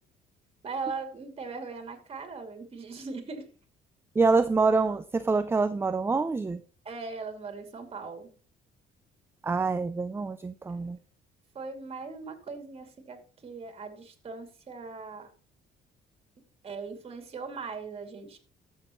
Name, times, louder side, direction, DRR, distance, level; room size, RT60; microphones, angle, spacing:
voice 1, 0.6-3.5 6.8-8.3 10.7-11.0 11.5-15.3 16.6-18.4, right 4 dB, 35° right, 6 dB, 2.5 m, -39 dB
voice 2, 4.2-6.6 9.4-11.0, right 4 dB, 15° right, 12 dB, 0.4 m, -26 dB
14.0 x 6.5 x 3.0 m, 0.39 s
cardioid pair, 110°, 17 cm